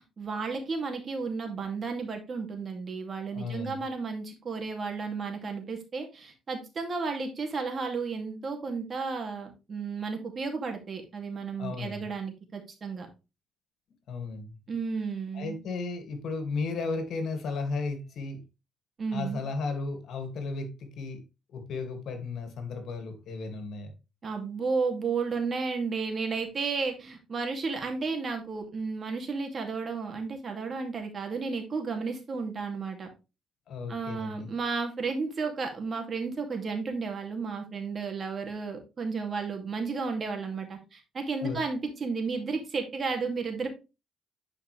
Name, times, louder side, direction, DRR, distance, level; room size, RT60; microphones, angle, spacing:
voice 1, 0.2-13.1 14.7-15.6 19.0-19.4 24.2-33.1 33.9-43.7, right 4 dB, 45° right, 2.5 m, -33 dB
voice 2, 3.3-3.8 11.6-12.1 14.1-14.6 15.3-18.4 19.1-21.2 21.5-23.9 33.7-34.5 41.4-41.6, left 4 dB, 70° left, 2.2 m, -34 dB
10.0 x 5.2 x 3.3 m
cardioid pair, 90°, 0 cm